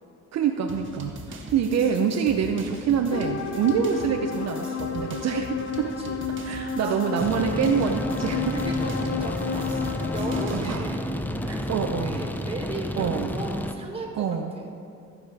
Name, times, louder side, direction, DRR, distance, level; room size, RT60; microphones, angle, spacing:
voice 1, 0.3-5.9 6.4-8.5 10.5-10.8 11.4-12.3 13.0-13.4 14.2-14.5, right 7 dB, 60° right, 4 dB, 0.6 m, -26 dB
sound 1, 0.7-10.8, right 2 dB, 40° right, 1.7 m, -42 dB
sound 2, 3.1-10.6, left 6 dB, 50° left, 0.7 m, -31 dB
voice 2, 5.8-6.2 6.5-7.4 8.5-9.7 10.1-11.1 11.4-14.7, right 2 dB, 20° right, 0 dB, 1.8 m, -37 dB
sound 3, 7.2-13.7, left 1 dB, 5° left, 0.5 m, -31 dB
15.0 x 4.9 x 4.8 m, 2.4 s
cardioid pair, 90°, 30 cm